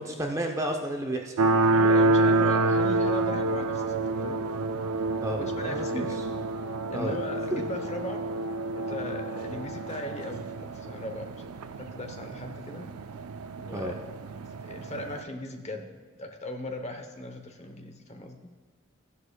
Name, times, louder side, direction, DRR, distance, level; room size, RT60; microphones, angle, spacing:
voice 1, 0.2-1.3 5.2-6.1 6.9-7.2 7.5-7.6 13.7-13.9, right 1 dB, 15° right, 2 dB, 0.6 m, -31 dB
sound 1, 1.4-15.2, right 2 dB, 80° right, 0.4 m, -28 dB
voice 2, 1.7-4.6 5.4-6.2 6.9-8.2 8.7-11.4 11.8-12.9 13.6-14.0 14.6-18.5, left 1 dB, 30° left, 5 dB, 0.8 m, -38 dB
14.0 x 11.0 x 2.3 m, 1.6 s
head